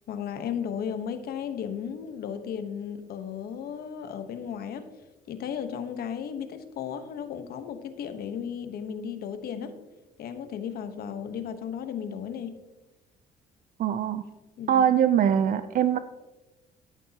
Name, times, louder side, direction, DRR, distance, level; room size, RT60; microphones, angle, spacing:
voice 1, 0.1-4.9 5.3-9.7 10.2-12.6 14.6-14.8, left 8 dB, 65° left, 9 dB, 1.1 m, -35 dB
voice 2, 13.8-14.2 14.7-16.0, right 9 dB, 55° right, 11 dB, 0.5 m, -22 dB
13.0 x 11.0 x 2.9 m, 1.1 s
cardioid pair, 110°, 17 cm